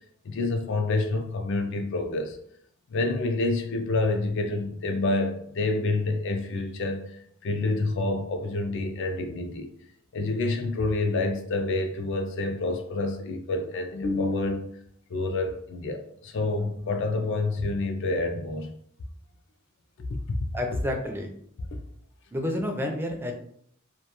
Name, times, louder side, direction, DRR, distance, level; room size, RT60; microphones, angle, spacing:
voice 1, 0.2-2.4 2.9-9.7 10.1-14.8 15.1-18.7 20.3-20.4, left 2 dB, 60° left, 0.4 m, -28 dB
voice 2, 20.5-21.3 22.3-23.3, left 1 dB, 10° right, 0.3 m, -29 dB
2.2 x 2.2 x 2.8 m
head